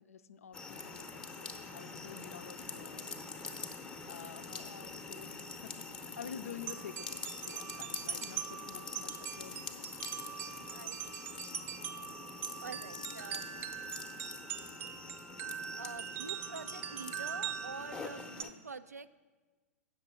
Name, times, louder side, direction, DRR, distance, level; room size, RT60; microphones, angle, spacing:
voice 1, 0.0-3.2 4.1-9.9, left 8 dB, 65° left, 13 dB, 0.5 m, -49 dB
sound 1, 0.5-18.5, left 4 dB, 10° left, 0.7 m, -45 dB
sound 2, 6.6-18.4, right 9 dB, 25° right, 0.5 m, -42 dB
voice 2, 10.7-11.4 12.6-13.7 15.8-19.1, right 4 dB, 80° right, 12 dB, 0.5 m, -47 dB
8.6 x 6.6 x 7.0 m, 1.3 s
figure-of-eight pair, 105°, 8 cm